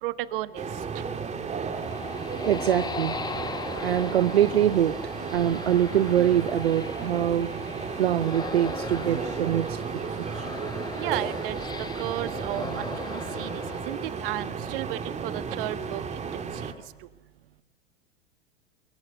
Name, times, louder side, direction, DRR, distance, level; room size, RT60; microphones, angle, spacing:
voice 1, 0.0-0.7 0.9-1.0 10.9-11.6 12.0-16.3 16.6-16.7, right 15 dB, 60° right, 12 dB, 1.4 m, -34 dB
sound 1, 0.6-16.7, right 5 dB, 20° right, 2.1 m, -34 dB
sound 2, 1.3-14.8, left 5 dB, 15° left, 0.9 m, -39 dB
voice 2, 2.4-3.2 3.8-5.0 5.3-7.5 8.0-9.8 10.2-10.3, right 11 dB, 85° right, 14 dB, 0.7 m, -23 dB
24.0 x 22.5 x 8.1 m, 1.2 s
hypercardioid pair, 95°, 30 cm